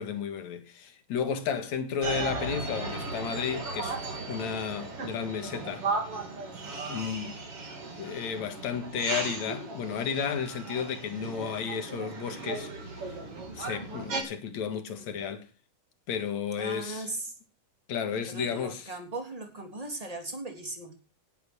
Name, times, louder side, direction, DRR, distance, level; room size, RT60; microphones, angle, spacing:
voice 1, 0.0-4.0 4.3-5.9 6.9-7.4 8.0-13.2 13.5-15.5 16.1-17.1 17.9-18.9, left 7 dB, 65° left, 3.0 m, -33 dB
sound 1, 2.0-14.2, right 3 dB, 45° right, 4.4 m, -36 dB
voice 2, 16.6-17.4 18.3-21.0, right 2 dB, 10° right, 3.1 m, -38 dB
18.0 x 9.4 x 6.2 m
omnidirectional pair, 3.5 m